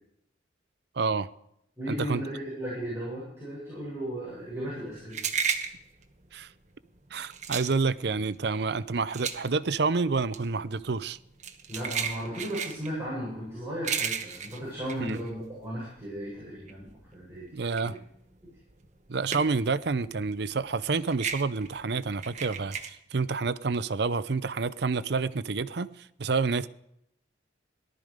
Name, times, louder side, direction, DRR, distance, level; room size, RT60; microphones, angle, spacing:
voice 1, 1.0-1.3 1.9-2.2 6.3-6.5 7.1-11.2 15.0-15.2 17.5-18.0 19.1-26.7, right 4 dB, 65° right, 0.6 m, -28 dB
voice 2, 1.8-5.2 11.7-17.6 17.8-18.0, equal, 15° right, 7.8 m, -36 dB
sound 1, 4.4-16.0 16.3-19.8 20.1-22.9, right 6 dB, 40° right, 1.2 m, -34 dB
18.0 x 12.5 x 5.1 m
head